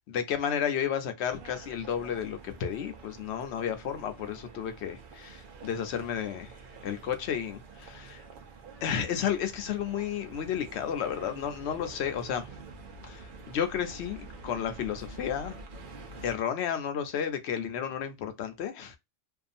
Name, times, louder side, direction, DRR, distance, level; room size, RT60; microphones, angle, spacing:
voice 1, 0.1-6.5 6.8-8.2 8.8-12.5 13.0-15.6 16.2-19.0, left 8 dB, 65° left, 0.8 m, -32 dB
sound 1, 1.3-16.3, right 3 dB, 50° right, 0.7 m, -48 dB
2.6 x 2.3 x 2.4 m
omnidirectional pair, 1.3 m